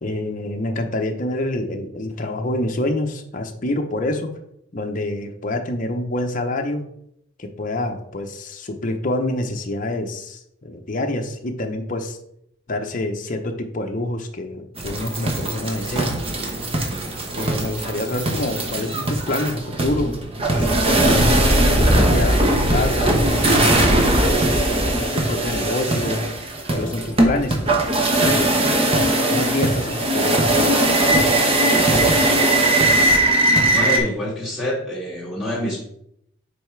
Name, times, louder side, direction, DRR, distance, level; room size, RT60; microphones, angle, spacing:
voice 1, 0.0-4.3 4.7-6.8 7.4-12.2 12.7-16.2 17.3-20.1 20.6-23.2 23.9-26.2 26.7-28.5 29.3-30.3, left 1 dB, 40° left, 4 dB, 0.7 m, -27 dB
sound 1, 14.8-34.0, right 1 dB, 30° right, 0.9 m, -19 dB
voice 2, 33.7-35.8, equal, 5° right, -8 dB, 2.1 m, -26 dB
5.2 x 4.8 x 4.5 m, 0.74 s
head